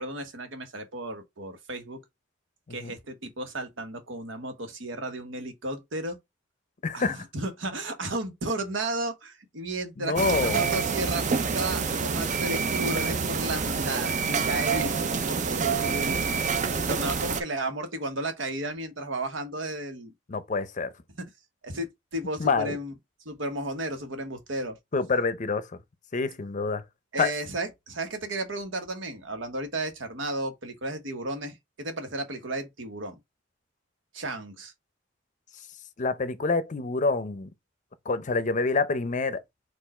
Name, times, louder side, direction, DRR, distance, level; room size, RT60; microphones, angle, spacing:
voice 1, 0.0-2.0 2.7-6.2 6.9-16.2 16.7-20.1 21.2-21.3 21.6-22.9 23.2-24.8 27.1-33.1 34.1-34.7, right 2 dB, 90° right, 1.2 m, -34 dB
voice 2, 6.8-7.2 10.0-10.6 20.3-20.9 22.4-22.8 24.9-25.7 26.1-26.8 27.2-27.3 36.0-37.5 38.1-39.4, left 4 dB, 40° left, 0.6 m, -27 dB
sound 1, 10.2-17.4, right 5 dB, 40° right, 0.5 m, -27 dB
4.4 x 2.5 x 4.2 m
head